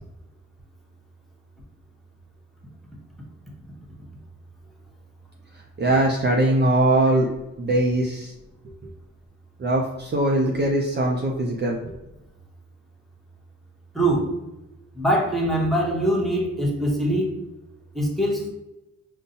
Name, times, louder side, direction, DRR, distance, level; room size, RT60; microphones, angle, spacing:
voice 1, 5.8-7.3 7.6-8.3 9.6-11.9, right 1 dB, 35° right, 0 dB, 0.5 m, -21 dB
voice 2, 13.9-14.3 14.9-17.3 17.9-18.5, right 1 dB, ahead, -2 dB, 0.9 m, -22 dB
5.3 x 2.2 x 2.7 m, 0.97 s
wide cardioid pair, 125°, 30 cm